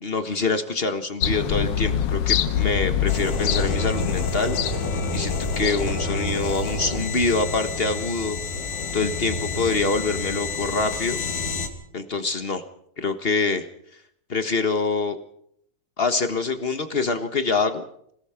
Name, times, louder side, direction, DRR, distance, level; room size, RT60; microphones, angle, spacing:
voice 1, 0.0-8.4 8.9-11.2 11.9-12.6 13.0-13.7 14.3-15.2 16.0-17.8, left 3 dB, 40° left, 8 dB, 0.8 m, -25 dB
sound 1, 1.2-7.1 7.4-7.5, left 9 dB, 65° left, 1.8 m, -26 dB
sound 2, 3.1-11.7, left 3 dB, 80° left, 3.9 m, -29 dB
27.0 x 17.5 x 5.9 m, 0.68 s
omnidirectional pair, 3.4 m